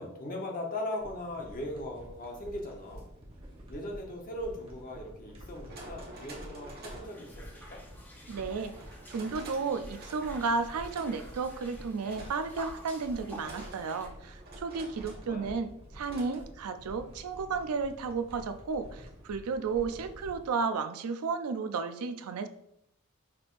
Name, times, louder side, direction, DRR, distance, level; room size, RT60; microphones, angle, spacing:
voice 1, 0.0-3.1 3.7-7.8 14.9-15.6, left 1 dB, 40° left, 1 dB, 0.9 m, -39 dB
sound 1, 1.0-20.5, equal, 25° right, 1.0 m, -49 dB
sound 2, 2.8-3.0 4.6-4.7 5.4-7.2 8.6-9.6 9.9-10.5 10.8-11.7 12.1-15.3 16.0-16.4, right 2 dB, 45° right, 1.2 m, -49 dB
sound 3, 7.0-14.1, equal, 10° left, 0.7 m, -51 dB
voice 2, 8.3-8.7 9.1-22.5, right 4 dB, 90° right, 9 dB, 0.4 m, -33 dB
5.8 x 3.3 x 2.5 m, 0.77 s
head